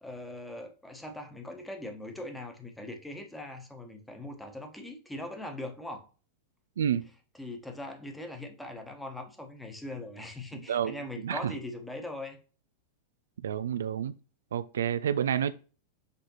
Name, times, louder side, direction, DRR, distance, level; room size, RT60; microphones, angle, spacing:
voice 1, 0.0-6.0 7.4-12.4, left 1 dB, 5° left, 1.2 m, -41 dB
voice 2, 10.7-11.5 13.4-14.1 14.5-15.5, right 9 dB, 65° right, 0.3 m, -29 dB
6.7 x 4.9 x 3.0 m
figure-of-eight pair, 90°, 0 cm